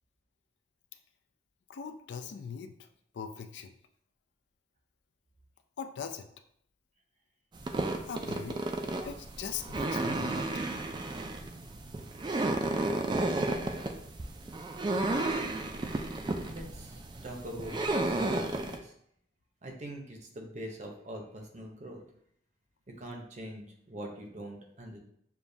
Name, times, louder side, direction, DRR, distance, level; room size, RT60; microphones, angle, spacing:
voice 1, 1.7-2.7 3.1-3.8 5.8-6.3 8.1-8.6 9.0-10.5, left 7 dB, 70° left, 8 dB, 0.4 m, -40 dB
sound 1, 7.6-18.8, right 2 dB, 25° right, 0.3 m, -32 dB
voice 2, 16.5-18.9 19.6-22.0 22.9-25.0, right 1 dB, 40° right, 2 dB, 0.7 m, -43 dB
6.8 x 2.3 x 2.6 m, 0.68 s
head